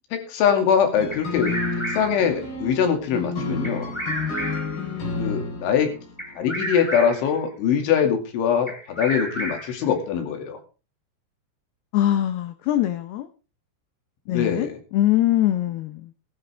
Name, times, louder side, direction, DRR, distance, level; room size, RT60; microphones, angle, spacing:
voice 1, 0.1-1.6 1.9-3.9 5.2-6.0 6.4-10.6 14.3-14.8, left 7 dB, 70° left, 5 dB, 4.7 m, -22 dB
sound 1, 1.0-6.4, left 3 dB, 50° left, 5.6 m, -31 dB
Bird vocalization bird call bird song, 1.1-2.3 3.6-4.8 6.2-7.3 8.7-9.8, equal, 5° left, 2.5 m, -31 dB
voice 2, 11.9-13.3 14.3-16.1, left 13 dB, 85° left, 10 dB, 2.2 m, -23 dB
19.5 x 12.0 x 3.5 m, 0.34 s
omnidirectional pair, 5.8 m